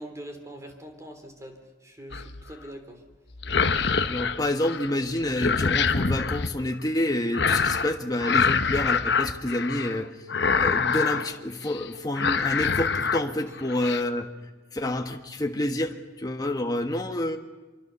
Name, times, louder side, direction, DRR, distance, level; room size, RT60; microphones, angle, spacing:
voice 1, 0.0-1.6 1.8-3.0, right 1 dB, 15° right, 5 dB, 3.4 m, -42 dB
sound 1, 2.1-2.5 3.3-4.9 5.2-6.5 7.3-7.9 8.2-10.0 10.3-11.3 11.7-11.9 12.2-13.2 13.6-14.0, left 5 dB, 65° left, 1.1 m, -25 dB
voice 2, 4.1-10.1 10.5-14.3 14.7-17.4, left 1 dB, 20° left, 3 dB, 1.4 m, -28 dB
26.0 x 23.0 x 6.9 m, 1.2 s
head